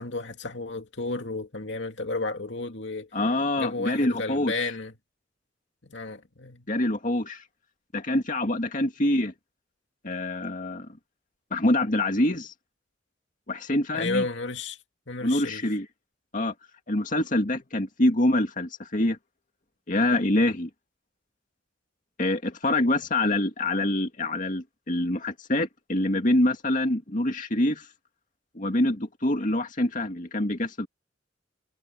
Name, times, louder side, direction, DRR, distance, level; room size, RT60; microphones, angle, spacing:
voice 1, 0.0-3.1 3.6-4.9 5.8-6.7 13.9-14.8 15.1-15.6, left 3 dB, 70° left, 2.5 m, -32 dB
voice 2, 3.1-4.5 6.7-7.4 7.9-9.3 10.0-10.9 11.5-12.5 13.5-14.2 15.2-15.9 16.3-16.5 16.9-19.2 19.9-20.7 22.2-27.9 28.6-30.9, left 1 dB, 45° left, 2.1 m, -25 dB
head